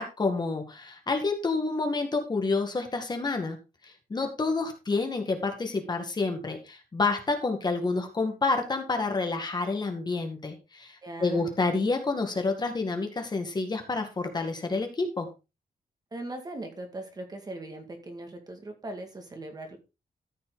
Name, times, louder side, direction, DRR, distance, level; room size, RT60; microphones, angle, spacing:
voice 1, 0.0-3.6 3.8-15.3, left 3 dB, 30° left, 5 dB, 1.9 m, -29 dB
voice 2, 11.0-11.6 16.1-19.8, right 2 dB, 25° right, 5 dB, 2.2 m, -40 dB
13.5 x 6.0 x 3.9 m, 0.27 s
wide cardioid pair, 165°, 15 cm